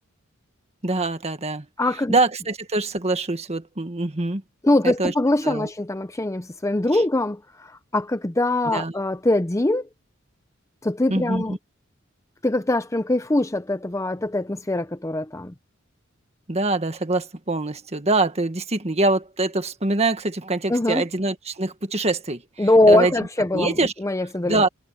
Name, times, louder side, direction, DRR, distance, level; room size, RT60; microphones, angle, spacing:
voice 1, 0.8-1.7 2.1-4.4 4.8-5.1 5.4-5.7 6.9-7.0 8.7-8.9 11.1-11.6 16.5-23.1 23.5-23.9 24.4-24.7, right 2 dB, 30° right, 1.7 m, -24 dB
voice 2, 1.8-2.1 4.6-9.9 10.8-11.5 12.4-15.5 20.7-21.0 22.6-24.6, left 1 dB, 15° left, 0.6 m, -22 dB
head